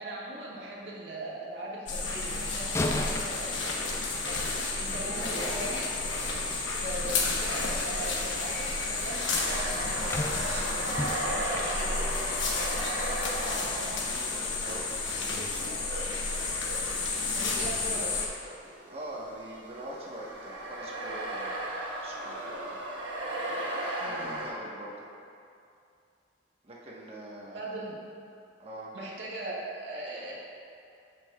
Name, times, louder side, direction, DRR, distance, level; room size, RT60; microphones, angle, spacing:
voice 1, 0.0-3.7 4.2-5.9 6.8-10.9 11.4-12.2 17.3-18.3 24.0-24.4 27.5-28.0 28.9-30.3, right 2 dB, 75° right, -5 dB, 1.6 m, -39 dB
sound 1, 1.9-18.3, left 3 dB, 90° left, 1.1 m, -31 dB
sound 2, 2.6-5.2 9.0-12.8 13.2-13.4 13.9-14.1, left 2 dB, 15° left, 0.3 m, -37 dB
voice 2, 4.9-5.5 12.8-15.8 18.9-21.7 22.0-22.8 24.0-25.1 26.6-27.7 28.6-28.9, right 1 dB, 35° right, -4 dB, 1.1 m, -43 dB
sound 3, 5.9-18.1 18.4-24.5, right 1 dB, 90° right, 1.4 m, -37 dB
14.5 x 5.5 x 2.3 m, 2.5 s
head